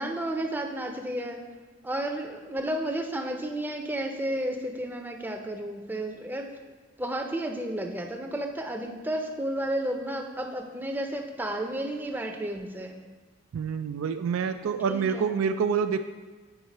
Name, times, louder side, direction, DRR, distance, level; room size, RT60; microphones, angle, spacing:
voice 1, 0.0-1.5 1.8-6.6 7.0-13.0 14.9-15.4, right 1 dB, 10° right, 3 dB, 0.5 m, -32 dB
voice 2, 13.5-16.0, right 6 dB, 85° right, 8 dB, 0.3 m, -27 dB
8.0 x 5.5 x 4.1 m, 1.3 s
head